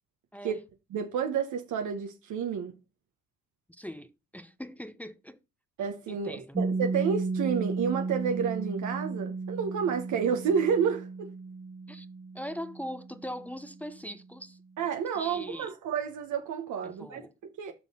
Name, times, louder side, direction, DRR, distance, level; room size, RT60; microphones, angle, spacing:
voice 1, 0.9-2.8 5.8-11.3 14.8-17.7, right 7 dB, 75° right, 1.3 m, -30 dB
voice 2, 3.7-5.4 6.1-6.5 11.9-12.1 12.3-14.6 15.1-15.7 16.8-17.3, equal, 5° left, 0.7 m, -41 dB
Piano, 6.5-13.8, right 3 dB, 15° right, 1.2 m, -34 dB
6.0 x 5.6 x 5.5 m
cardioid pair, 90°, 30 cm